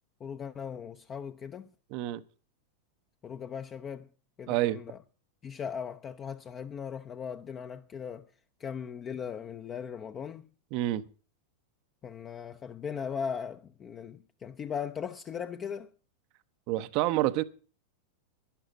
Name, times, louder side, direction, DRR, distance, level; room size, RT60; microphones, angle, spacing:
voice 1, 0.2-1.7 3.2-4.1 4.4-5.0 5.4-8.2 8.6-10.5 12.0-15.9, left 7 dB, 25° left, 0.7 m, -38 dB
voice 2, 1.9-2.2 4.5-4.8 10.7-11.1 16.7-17.4, right 15 dB, 45° right, 0.7 m, -28 dB
11.5 x 11.0 x 6.0 m
figure-of-eight pair, 90°, 0 cm